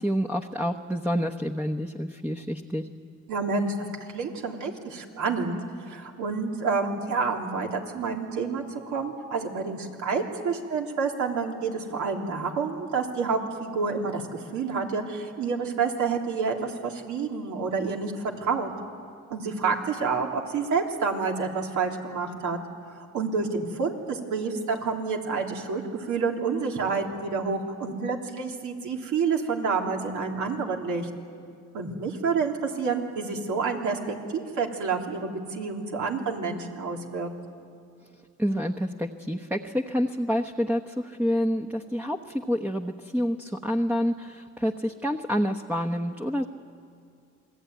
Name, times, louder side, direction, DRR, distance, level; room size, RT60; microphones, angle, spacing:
voice 1, 0.0-2.9 38.4-46.5, equal, 5° right, 3 dB, 1.1 m, -28 dB
voice 2, 3.3-3.7 4.1-5.6 5.8-18.7 19.3-22.6 23.1-31.1 31.7-37.3, right 5 dB, 75° right, 1 dB, 3.4 m, -28 dB
27.5 x 19.5 x 9.4 m, 2.3 s
cardioid pair, 90°, 30 cm